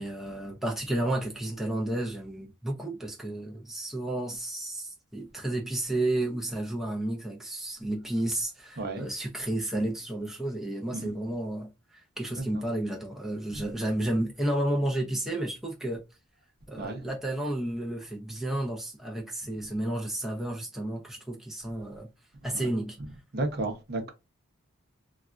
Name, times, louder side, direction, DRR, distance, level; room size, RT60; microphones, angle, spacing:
voice 1, 0.0-16.0 16.7-22.1 22.4-23.0, right 1 dB, ahead, 0.5 m, -32 dB
voice 2, 23.3-24.1, right 2 dB, 50° right, 0.7 m, -33 dB
3.4 x 2.3 x 2.4 m
head